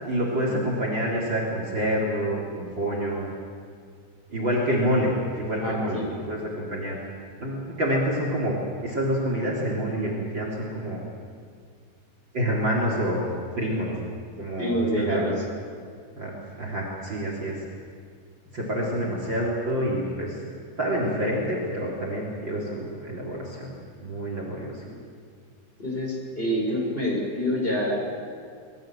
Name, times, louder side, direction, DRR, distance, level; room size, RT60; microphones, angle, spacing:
voice 1, 0.0-3.3 4.3-6.0 6.3-7.0 7.4-8.5 8.8-11.0 12.3-13.3 13.6-14.0 14.4-15.3 16.2-16.3 16.6-17.6 18.5-20.4 20.8-23.7 24.0-24.7, equal, 35° right, -2 dB, 4.0 m, -27 dB
voice 2, 5.6-6.1 14.5-15.3 24.5-24.9 25.8-28.0, equal, 15° left, -2 dB, 6.3 m, -27 dB
26.0 x 21.5 x 7.7 m, 2.2 s
omnidirectional pair, 3.7 m